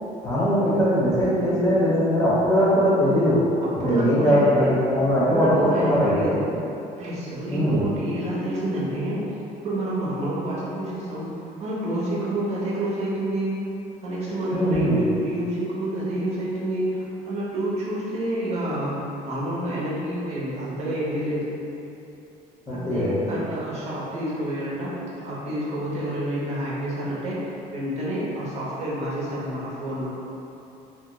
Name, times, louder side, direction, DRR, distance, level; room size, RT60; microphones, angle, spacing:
voice 1, 0.2-3.4 3.8-6.3 7.5-7.9 14.5-15.0 22.7-23.2, equal, 20° left, -10 dB, 0.9 m, -20 dB
voice 2, 3.6-4.6 5.3-6.6 7.0-13.7 14.0-21.6 22.7-25.0 25.2-30.1, right 1 dB, 45° right, -7 dB, 0.8 m, -28 dB
2.7 x 2.1 x 3.7 m, 2.9 s
cardioid pair, 150°, 16 cm